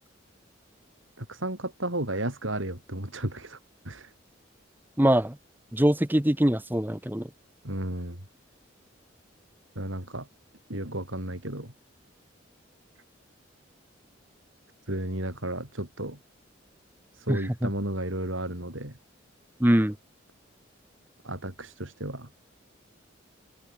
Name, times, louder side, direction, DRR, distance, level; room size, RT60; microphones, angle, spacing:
voice 1, 1.2-3.6 3.8-4.1 7.6-8.2 9.8-10.3 10.7-11.7 14.9-16.2 17.1-18.9 21.2-22.3, right 1 dB, 80° right, 7.7 m, -33 dB
voice 2, 5.0-5.4 5.7-7.3 17.3-17.7 19.6-19.9, right 1 dB, 10° right, 0.9 m, -23 dB
head